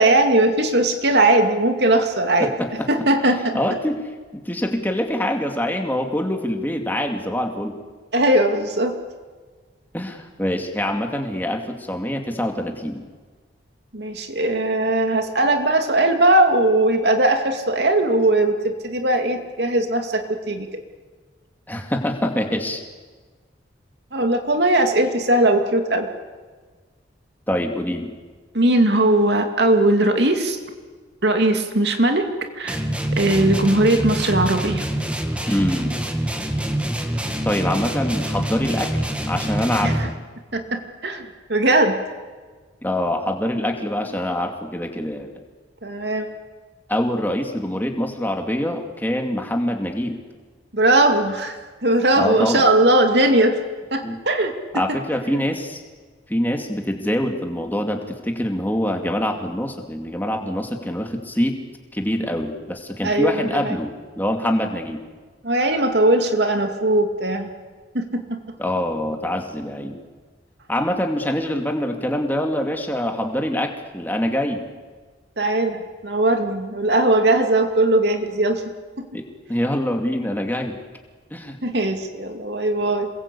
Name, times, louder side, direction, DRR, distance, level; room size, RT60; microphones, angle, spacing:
voice 1, 0.0-2.5 2.9-3.6 8.1-9.0 13.9-20.8 24.1-26.1 28.5-30.6 31.2-32.3 32.6-32.8 33.2-34.9 39.8-40.1 40.5-41.9 45.8-46.3 50.7-53.6 53.9-54.5 63.0-63.8 65.4-67.5 67.9-68.4 75.4-78.6 79.0-79.1 81.6-83.1, right 1 dB, 65° right, 5 dB, 2.5 m, -19 dB
voice 2, 2.4-2.9 3.5-7.8 9.9-13.0 21.7-22.8 27.5-28.1 35.5-35.9 37.4-38.9 39.3-40.1 42.8-45.3 46.9-50.2 52.2-52.7 54.0-54.2 54.7-55.8 56.3-61.6 61.9-65.0 68.6-70.0 70.7-74.7 79.1-80.8 81.3-81.6, left 1 dB, 10° left, 3 dB, 2.5 m, -25 dB
sound 1, 32.7-40.2, right 1 dB, 5° right, 2.1 m, -25 dB
27.0 x 22.0 x 8.5 m, 1.4 s
head